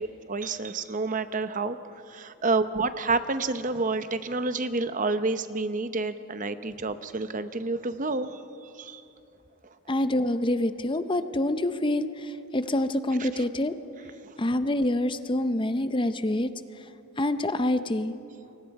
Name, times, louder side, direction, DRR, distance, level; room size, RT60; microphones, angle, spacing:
voice 1, 0.0-1.8 2.1-9.0 13.2-13.4 14.2-14.3, right 3 dB, 35° right, 11 dB, 0.8 m, -29 dB
voice 2, 9.9-13.7 14.4-16.5 17.2-18.1, left 1 dB, 20° left, 11 dB, 0.6 m, -26 dB
29.0 x 24.0 x 4.8 m, 2.7 s
head